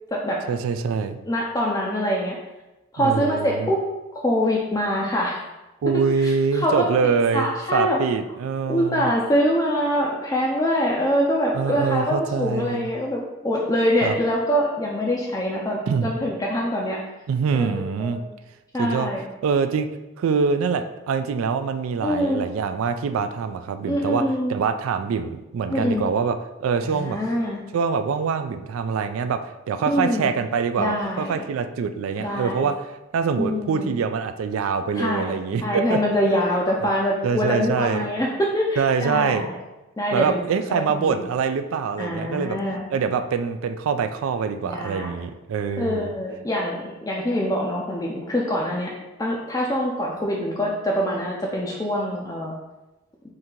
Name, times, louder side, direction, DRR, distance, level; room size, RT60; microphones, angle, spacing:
voice 1, 0.5-1.2 3.0-3.7 5.8-9.1 11.5-12.9 14.0-14.2 15.9-16.1 17.3-18.2 18.8-19.1 19.4-19.9 20.2-24.2 24.5-27.2 27.7-36.0 37.2-38.1 38.8-39.5 40.1-42.6 42.9-46.1, right 5 dB, 85° right, 8 dB, 0.3 m, -24 dB
voice 2, 1.3-2.4 2.9-3.8 4.1-5.4 6.2-6.9 7.3-8.0 8.7-17.0 17.5-18.2 18.7-19.2 22.0-22.4 23.9-24.5 25.7-26.1 26.8-27.6 29.9-30.3 30.8-31.4 32.2-32.7 33.4-33.9 35.0-35.3 35.6-39.6 40.0-40.4 40.7-41.2 42.0-42.9 44.7-45.1 45.8-48.9 49.2-52.5, equal, 15° left, -3 dB, 0.4 m, -24 dB
3.7 x 2.7 x 4.4 m, 1.0 s
head